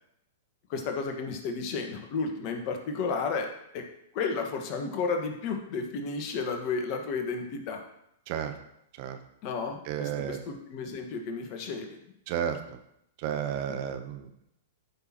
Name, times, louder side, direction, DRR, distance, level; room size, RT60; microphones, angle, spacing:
voice 1, 0.7-3.5 3.7-3.9 4.1-7.8 9.4-12.0 13.7-13.8, left 4 dB, 45° left, 4 dB, 1.5 m, -32 dB
voice 2, 9.9-10.4 12.3-12.6 13.2-14.3, right 9 dB, 45° right, 7 dB, 0.9 m, -32 dB
13.0 x 6.0 x 3.0 m, 0.77 s
figure-of-eight pair, 105°, 0 cm